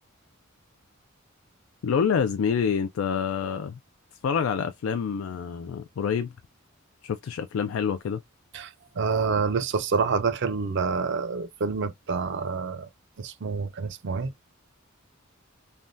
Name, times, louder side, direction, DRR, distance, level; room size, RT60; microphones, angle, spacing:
voice 1, 1.8-3.8 4.2-6.3 7.0-8.2, left 6 dB, 75° left, 0.3 m, -27 dB
voice 2, 8.5-12.9 13.2-14.3, right 5 dB, 60° right, 0.5 m, -27 dB
3.3 x 2.2 x 2.5 m
head